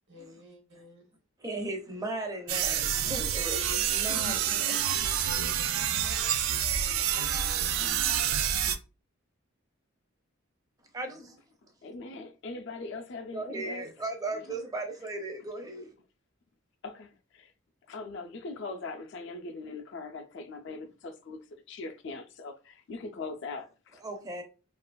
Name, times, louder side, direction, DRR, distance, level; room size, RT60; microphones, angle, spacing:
voice 1, 0.1-1.1 3.6-4.8 5.4-5.8, left 2 dB, 60° right, 0.8 m, -48 dB
voice 2, 1.4-4.3 4.6-5.1 10.9-11.4 13.3-15.9 24.0-24.4, right 2 dB, 15° right, 0.5 m, -37 dB
sound 1, 2.5-8.7, right 9 dB, 85° right, 0.3 m, -28 dB
voice 3, 11.8-13.8 14.3-14.5 16.8-17.5 17.9-21.4 21.7-24.0, left 3 dB, 60° left, 0.4 m, -41 dB
2.8 x 2.4 x 2.2 m
head